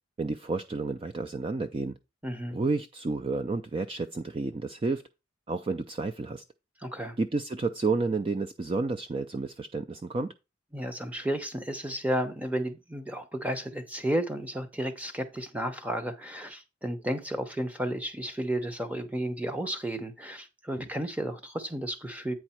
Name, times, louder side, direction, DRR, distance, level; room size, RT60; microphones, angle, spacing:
voice 1, 0.2-2.0 2.5-5.0 5.5-6.4 7.2-10.3, right 3 dB, 25° right, 0.3 m, -30 dB
voice 2, 2.2-2.6 6.8-7.2 10.7-22.4, right 1 dB, 5° right, 0.8 m, -32 dB
8.9 x 4.8 x 4.3 m
head